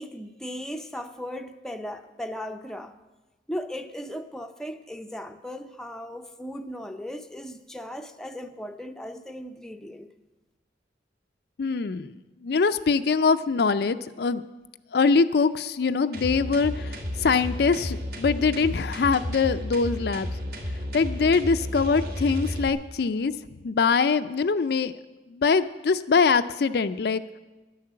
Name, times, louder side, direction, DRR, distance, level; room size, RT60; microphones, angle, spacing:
voice 1, 0.0-2.9 3.5-10.1, equal, 5° left, 0.5 m, -37 dB
voice 2, 11.6-12.1 12.4-14.4 14.9-20.3 20.9-23.3 23.6-24.9 25.3-27.4, left 5 dB, 60° left, 0.4 m, -23 dB
sound 1, 16.1-22.7, left 1 dB, 60° right, 1.7 m, -32 dB
11.0 x 9.8 x 7.5 m
head